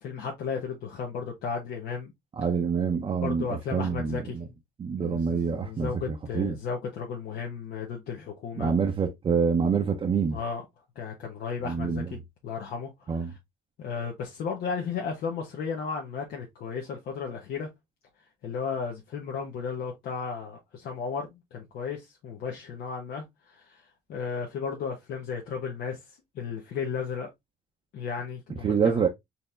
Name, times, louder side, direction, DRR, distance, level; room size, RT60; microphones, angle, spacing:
voice 1, 0.0-2.1 3.2-4.4 4.9-8.7 10.3-10.6 10.9-12.2 12.4-13.4 13.8-17.7 18.4-23.8 24.1-26.0 26.3-27.3 27.9-29.0, left 6 dB, 65° left, 1.2 m, -34 dB
voice 2, 2.4-4.5 4.8-6.6 8.6-10.4 11.6-12.1 13.1-13.3 28.6-29.1, right 6 dB, 30° right, 0.7 m, -26 dB
4.4 x 2.8 x 3.3 m
cardioid pair, 115°, 17 cm